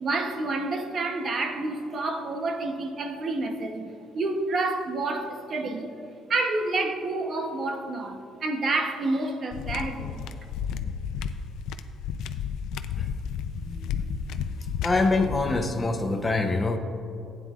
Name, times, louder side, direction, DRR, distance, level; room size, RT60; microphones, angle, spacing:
voice 1, 0.0-3.9 4.1-5.9 6.3-10.2, right 2 dB, 35° right, 5 dB, 0.9 m, -29 dB
sound 1, 9.5-15.7, left 7 dB, 75° left, 0.4 m, -32 dB
voice 2, 14.8-16.8, left 3 dB, 15° left, 3 dB, 0.7 m, -25 dB
15.5 x 9.3 x 2.5 m, 2.8 s
cardioid pair, 150°, 0 cm